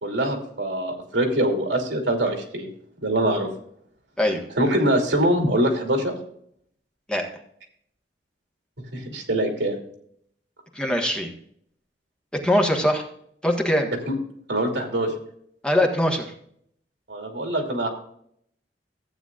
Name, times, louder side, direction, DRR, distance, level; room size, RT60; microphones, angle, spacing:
voice 1, 0.0-2.7 3.0-3.5 4.6-6.1 8.9-9.8 14.5-15.1 17.1-17.9, right 1 dB, 80° right, 2 dB, 2.9 m, -23 dB
voice 2, 10.7-11.3 12.3-13.0 13.4-13.9 15.6-16.3, left 1 dB, 5° left, 1 dB, 1.4 m, -22 dB
15.0 x 9.0 x 2.4 m, 0.68 s
head